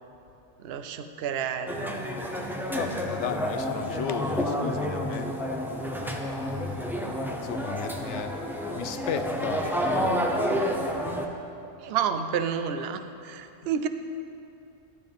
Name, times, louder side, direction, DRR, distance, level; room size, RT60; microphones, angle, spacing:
voice 1, 0.6-2.1 11.8-13.9, right 7 dB, 65° right, 9 dB, 0.8 m, -30 dB
sound 1, 1.6-8.9, left 1 dB, 25° right, 1.9 m, -45 dB
sound 2, 1.7-11.3, equal, 5° right, 0.4 m, -30 dB
voice 2, 2.6-5.4 6.0-8.4 8.7-10.2, left 7 dB, 75° left, 9 dB, 0.9 m, -35 dB
11.5 x 11.0 x 3.5 m, 2.7 s
omnidirectional pair, 1.2 m